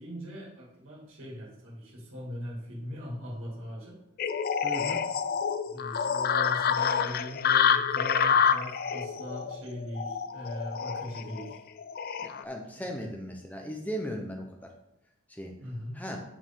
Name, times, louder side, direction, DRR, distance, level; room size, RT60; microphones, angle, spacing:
voice 1, 0.0-4.0 5.7-11.6 13.0-13.1 15.6-16.0, equal, 70° right, -5 dB, 2.6 m, -40 dB
sound 1, 4.2-12.4, left 7 dB, 45° left, 0.3 m, -28 dB
voice 2, 4.6-5.0 11.3-11.4 12.2-14.7 15.3-15.5 15.9-16.2, equal, 5° left, 2 dB, 0.7 m, -37 dB
9.0 x 4.7 x 3.7 m, 0.89 s
head